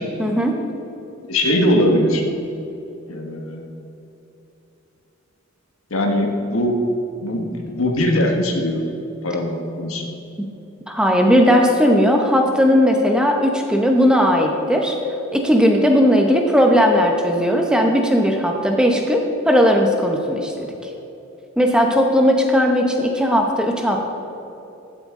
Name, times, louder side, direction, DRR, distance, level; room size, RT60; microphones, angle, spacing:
voice 1, 0.2-0.6 10.4-10.5 10.9-15.0 15.3-20.5 20.8-20.9 21.6-24.0, equal, 5° right, 2 dB, 0.8 m, -17 dB
voice 2, 1.3-2.2 3.1-3.7 5.9-6.7 7.2-8.8 9.2-10.1, left 1 dB, 85° left, 2 dB, 1.4 m, -20 dB
14.5 x 7.9 x 3.7 m, 2.9 s
head